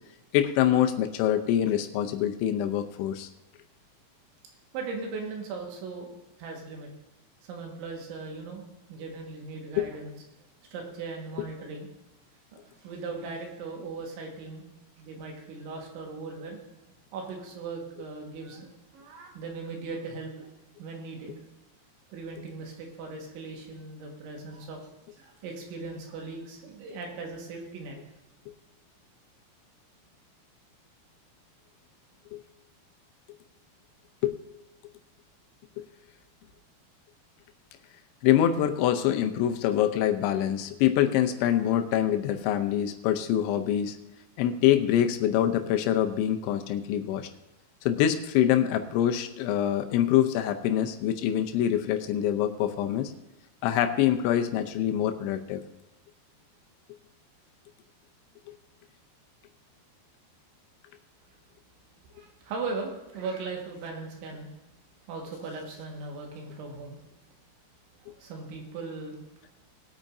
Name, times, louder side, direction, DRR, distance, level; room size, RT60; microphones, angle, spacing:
voice 1, 0.3-3.3 9.8-9.9 32.3-32.4 34.2-34.4 38.2-44.0 44.4-47.3 47.9-53.1 53.6-55.6, left 11 dB, 80° left, 6 dB, 3.0 m, -25 dB
voice 2, 4.7-6.9 7.4-8.6 8.9-10.1 10.7-11.9 12.5-14.6 15.0-16.6 17.1-18.7 18.9-20.5 20.8-21.3 22.1-24.8 25.2-28.0 62.1-64.5 65.1-67.0 68.0-69.2, right 4 dB, 80° right, 1 dB, 4.0 m, -38 dB
20.5 x 8.7 x 2.7 m, 0.96 s
omnidirectional pair, 5.4 m